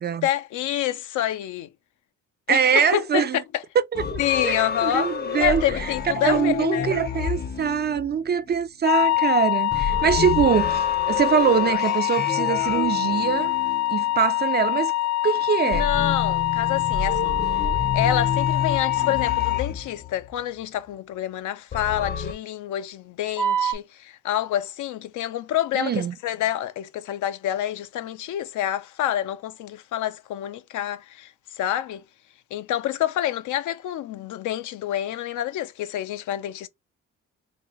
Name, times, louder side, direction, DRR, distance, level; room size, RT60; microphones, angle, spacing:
voice 1, 0.2-1.7 2.5-3.6 4.2-5.1 5.4-6.9 15.6-17.3 17.9-32.0 32.5-36.7, left 12 dB, 80° left, 0.6 m, -27 dB
voice 2, 2.5-3.4 3.9-5.6 6.2-13.5 13.9-14.9 15.2-15.9 25.7-26.1, right 7 dB, 35° right, 0.4 m, -23 dB
sound 1, 3.9-8.6 9.7-14.5 15.7-20.4 21.7-22.3, left 6 dB, 35° left, 0.6 m, -29 dB
sound 2, 8.8-19.6 23.4-23.7, left 11 dB, 65° left, 1.1 m, -24 dB
4.0 x 2.6 x 3.0 m
cardioid pair, 90°, 30 cm